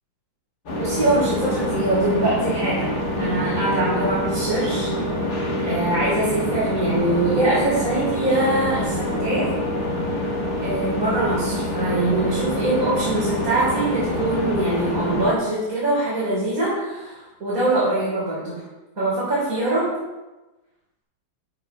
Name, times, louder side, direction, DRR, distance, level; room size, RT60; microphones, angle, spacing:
sound 1, 0.7-15.3, equal, 55° left, 2.3 m, -26 dB
voice 1, 0.8-4.9 5.6-9.5 10.6-18.6 19.0-19.9, right 2 dB, 45° right, -10 dB, 4.7 m, -23 dB
14.0 x 6.0 x 4.9 m, 1.1 s
omnidirectional pair, 2.1 m